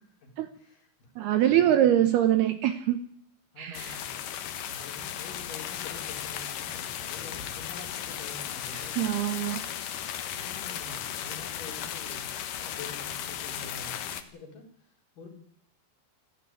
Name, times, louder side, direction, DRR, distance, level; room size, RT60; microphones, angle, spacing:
voice 1, 0.5-1.1 1.4-2.0 3.5-4.1 4.7-9.1 10.3-12.3 12.6-15.3, left 4 dB, 45° left, 3 dB, 5.6 m, -47 dB
voice 2, 1.2-3.0 3.6-4.0 8.7-9.6, right 11 dB, 70° right, 10 dB, 2.7 m, -24 dB
sound 1, 3.7-14.2, left 10 dB, 65° left, 2.3 m, -36 dB
28.0 x 11.5 x 9.8 m, 0.65 s
omnidirectional pair, 5.4 m